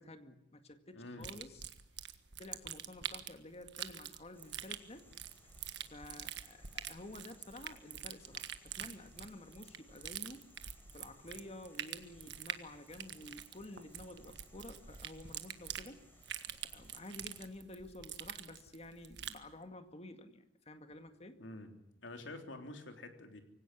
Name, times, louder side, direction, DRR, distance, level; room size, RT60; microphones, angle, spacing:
voice 1, 0.0-1.6 2.4-5.1 5.4-5.5 5.9-10.4 10.9-16.0 16.5-21.4, left 1 dB, 35° left, 8 dB, 2.1 m, -51 dB
voice 2, 0.9-1.3 21.4-21.7 22.0-23.4, left 2 dB, 80° left, 5 dB, 3.5 m, -47 dB
sound 1, 1.2-19.4, right 10 dB, 65° right, 1.5 m, -46 dB
sound 2, 4.3-17.5, left 1 dB, 10° left, 4.8 m, -65 dB
24.0 x 17.0 x 9.8 m, 0.80 s
head